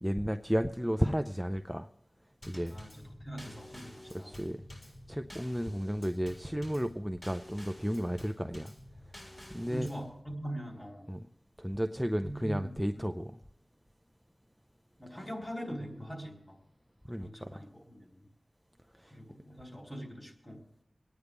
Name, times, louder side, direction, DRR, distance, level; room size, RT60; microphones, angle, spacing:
voice 1, 0.0-1.9 2.5-2.8 4.1-4.6 5.1-8.7 9.5-9.9 11.1-11.3 11.6-13.4 17.0-17.5 19.0-19.1, equal, 5° right, 7 dB, 0.5 m, -33 dB
Drum kit / Snare drum / Bass drum, 2.4-10.1, left 1 dB, 40° left, 4.4 m, -50 dB
voice 2, 2.7-4.3 9.7-11.1 12.2-13.1 15.0-16.6 17.2-18.3 19.1-20.6, equal, 25° left, 0 dB, 3.8 m, -42 dB
26.0 x 9.5 x 3.5 m, 0.77 s
wide cardioid pair, 50°, 0 cm